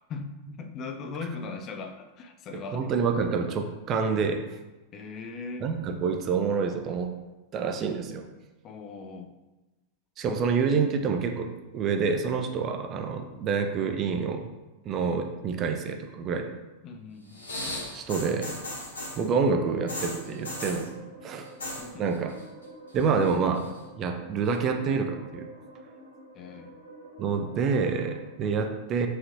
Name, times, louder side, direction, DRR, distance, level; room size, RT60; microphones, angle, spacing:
voice 1, 0.1-3.0 4.9-5.7 8.6-9.3 16.8-17.4 21.8-22.0 26.3-26.7, left 4 dB, 30° left, 6 dB, 0.4 m, -39 dB
voice 2, 2.5-4.5 5.6-7.1 7.5-8.2 10.2-14.4 14.8-16.5 17.9-18.5 19.2-20.9 21.2-21.5 22.0-22.4 22.9-25.5 27.2-29.1, right 5 dB, 30° right, 5 dB, 0.4 m, -27 dB
sound 1, 17.3-19.3 19.9-20.9 21.4-21.9 22.1-22.6 23.0-23.8 24.5-24.6, left 1 dB, 75° left, 0.9 m, -36 dB
sound 2, 18.9-28.3, right 2 dB, 85° right, 0.7 m, -48 dB
4.7 x 2.9 x 2.8 m, 1.1 s
figure-of-eight pair, 90°, 0 cm